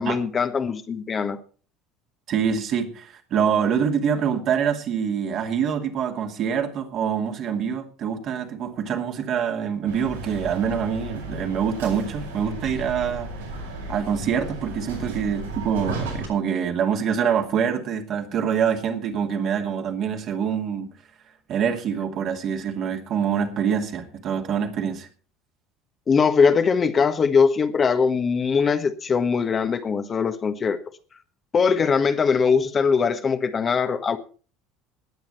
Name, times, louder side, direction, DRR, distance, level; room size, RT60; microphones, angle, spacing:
voice 1, 0.0-1.4 26.1-30.8 31.5-34.2, left 5 dB, 30° left, 8 dB, 1.4 m, -21 dB
voice 2, 2.3-13.3 13.9-20.9 21.5-25.1, right 7 dB, 45° right, 4 dB, 2.5 m, -25 dB
sound 1, 9.9-16.3, right 2 dB, 75° right, 7.5 m, -34 dB
19.0 x 9.3 x 4.3 m, 0.38 s
figure-of-eight pair, 65°, 0 cm